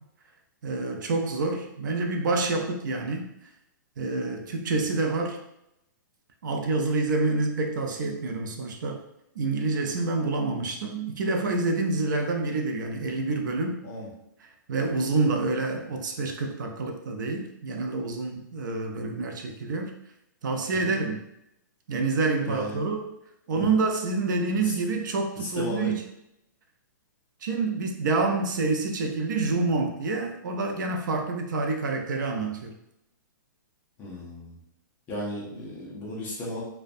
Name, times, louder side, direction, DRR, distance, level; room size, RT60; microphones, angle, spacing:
voice 1, 0.6-3.3 4.0-5.4 6.4-9.0 9.4-13.8 14.7-19.9 20.4-21.2 21.9-23.1 23.5-26.0 27.4-32.7, right 3 dB, 65° right, 3 dB, 0.4 m, -27 dB
voice 2, 22.4-22.8 23.5-23.7 24.6-24.7 25.4-25.9 34.0-34.6 35.1-36.6, left 1 dB, 15° left, -5 dB, 0.5 m, -35 dB
2.5 x 2.1 x 2.5 m, 0.82 s
hypercardioid pair, 170°, 11 cm